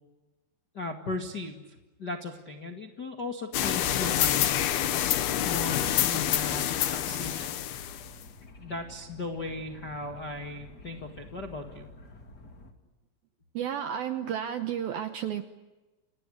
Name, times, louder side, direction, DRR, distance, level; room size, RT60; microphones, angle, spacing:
voice 1, 0.7-4.7 5.4-7.6 8.6-11.9, left 2 dB, 50° left, 2 dB, 1.2 m, -37 dB
sound 1, 3.5-8.2, left 11 dB, 65° left, 2.7 m, -27 dB
sound 2, 7.0-12.7, left 1 dB, 30° left, 2.3 m, -50 dB
voice 2, 13.5-15.4, right 9 dB, 75° right, 8 dB, 2.2 m, -32 dB
29.5 x 29.0 x 6.6 m, 1.1 s
omnidirectional pair, 5.7 m